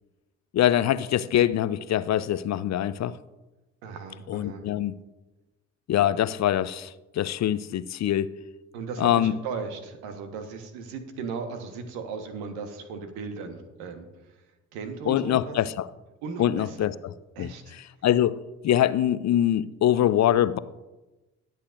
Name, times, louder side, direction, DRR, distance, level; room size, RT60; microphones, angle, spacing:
voice 1, 0.5-3.2 4.3-4.9 5.9-8.3 9.0-9.3 15.1-15.9 16.4-18.4 18.6-20.6, left 11 dB, 45° left, 0.6 m, -24 dB
voice 2, 3.8-4.6 8.7-14.4 14.7-15.6 16.2-16.9 17.3-17.7, right 5 dB, 70° right, 1.4 m, -37 dB
21.0 x 8.4 x 2.6 m
hypercardioid pair, 45°, 39 cm